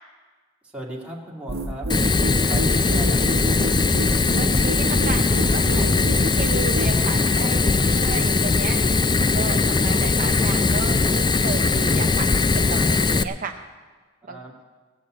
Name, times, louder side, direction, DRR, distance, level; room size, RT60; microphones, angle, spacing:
voice 1, 0.7-1.9 2.4-3.5 14.2-14.5, right 2 dB, 5° right, -4 dB, 2.2 m, -36 dB
sound 1, 1.5-6.9, right 1 dB, 70° right, 1.4 m, -28 dB
Fire, 1.9-13.2, left 3 dB, 20° left, 0.4 m, -20 dB
voice 2, 4.4-5.2 5.5-8.8 9.3-13.6 14.3-14.4, right 5 dB, 40° right, 4 dB, 0.6 m, -33 dB
Clock, 5.4-12.1, right 1 dB, 70° left, 2.9 m, -48 dB
17.5 x 7.2 x 7.6 m, 1.4 s
head